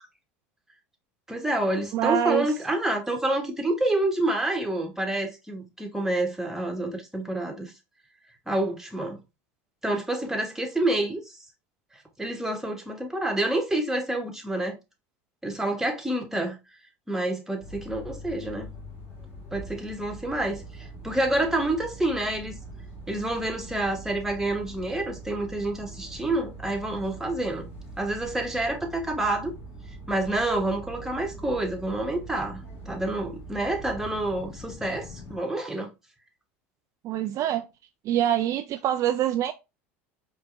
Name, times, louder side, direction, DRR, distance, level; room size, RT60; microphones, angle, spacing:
voice 1, 1.3-7.7 8.5-9.2 9.8-11.4 12.2-14.8 15.4-16.6 17.1-18.7 19.5-22.5 23.1-27.7 28.0-29.5 30.1-35.9, right 1 dB, 5° right, 1.2 m, -28 dB
voice 2, 1.9-2.5 37.0-37.7 38.0-39.5, right 11 dB, 45° right, 0.3 m, -25 dB
sound 1, 17.6-35.4, right 2 dB, 35° left, 2.2 m, -42 dB
4.6 x 2.8 x 2.6 m
hypercardioid pair, 90°, 7 cm